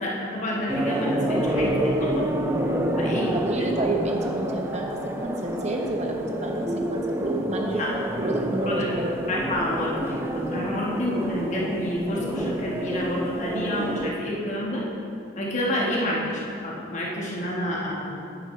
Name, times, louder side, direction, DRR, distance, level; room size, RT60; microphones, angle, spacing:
voice 1, 0.0-2.3 3.0-3.4 7.8-7.9 8.7-8.9 9.3-14.8 15.4-16.3 16.6-18.1, left 1 dB, 35° left, -4 dB, 1.5 m, -28 dB
sound 1, 0.7-14.1, right 1 dB, 10° right, 0.4 m, -28 dB
voice 2, 3.3-7.8 8.2-9.2 16.1-16.3, right 1 dB, 35° right, 1 dB, 0.9 m, -30 dB
10.5 x 9.1 x 3.2 m, 2.6 s
head